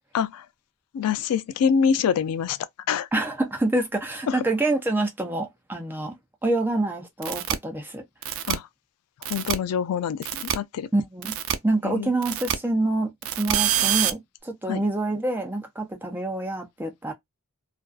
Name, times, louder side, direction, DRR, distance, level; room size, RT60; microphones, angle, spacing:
voice 1, 0.1-0.5 0.9-2.6 2.9-3.1 4.3-4.4 8.5-8.7 9.3-10.9 11.8-12.1 14.7-14.8, left 7 dB, 90° left, 0.3 m, -25 dB
voice 2, 3.1-6.1 6.4-8.0 8.3-8.4 10.9-11.4 11.6-17.1, right 2 dB, 10° right, 0.5 m, -26 dB
sound 1, 7.2-7.5 8.2-8.5 9.2-9.5 10.2-10.5 11.2-11.5 12.2-12.5 13.2-14.1, right 10 dB, 65° right, 0.4 m, -25 dB
2.5 x 2.3 x 2.3 m
head